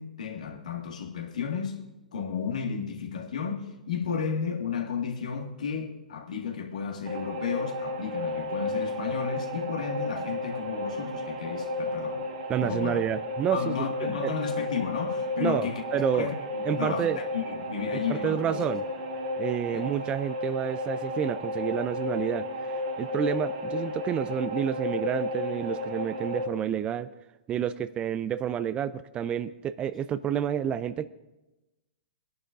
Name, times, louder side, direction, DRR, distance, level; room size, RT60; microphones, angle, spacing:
voice 1, 0.0-1.8 2.1-12.2 12.6-13.0 13.5-15.8 16.1-18.6 19.7-19.8, left 6 dB, 70° left, 1.8 m, -33 dB
sound 1, 7.1-26.4, left 1 dB, 60° right, 3.6 m, -33 dB
voice 2, 12.5-14.4 15.4-16.3 16.6-17.2 17.9-18.8 19.4-27.1 27.5-31.1, right 9 dB, 25° right, 0.4 m, -29 dB
23.0 x 11.0 x 2.6 m
hypercardioid pair, 110°, 4 cm